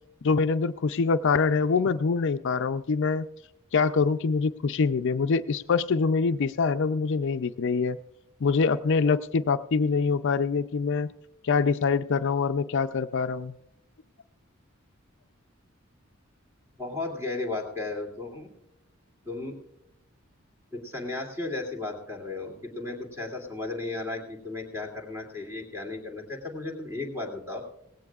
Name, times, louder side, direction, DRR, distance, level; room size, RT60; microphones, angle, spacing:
voice 1, 0.2-3.3 3.7-8.0 8.4-11.1 11.4-13.6, left 5 dB, 60° left, 11 dB, 0.5 m, -24 dB
voice 2, 16.8-18.5 19.2-19.6 20.7-27.6, left 2 dB, 15° right, 1 dB, 2.7 m, -35 dB
18.0 x 16.5 x 2.4 m, 0.82 s
head